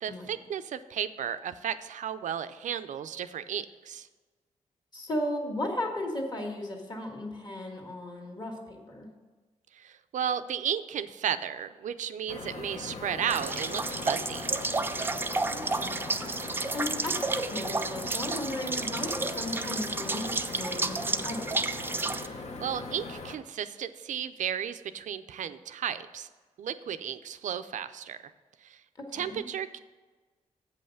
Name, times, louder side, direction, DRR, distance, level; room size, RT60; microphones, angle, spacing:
voice 1, 0.0-4.1 9.7-14.5 22.2-26.3 26.6-28.3 28.6-28.8 29.1-29.8, right 9 dB, 80° right, 11 dB, 0.5 m, -34 dB
voice 2, 4.9-9.1 15.5-16.0 16.7-21.7 29.0-29.4, left 1 dB, 35° left, 1 dB, 1.7 m, -35 dB
sound 1, 12.3-23.4, left 3 dB, 55° left, 0.9 m, -40 dB
sound 2, 13.3-22.3, right 3 dB, 15° right, 0.4 m, -31 dB
8.1 x 5.5 x 6.5 m, 1.3 s
wide cardioid pair, 135°, 13 cm